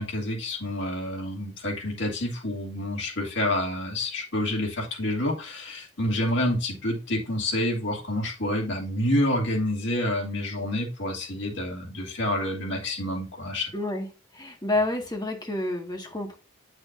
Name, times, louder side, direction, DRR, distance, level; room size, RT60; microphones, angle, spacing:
voice 1, 0.0-13.7, left 1 dB, 65° left, -1 dB, 2.9 m, -28 dB
voice 2, 13.7-14.1 14.3-16.3, left 2 dB, 20° left, 2 dB, 1.8 m, -29 dB
8.6 x 6.3 x 2.6 m, 0.31 s
head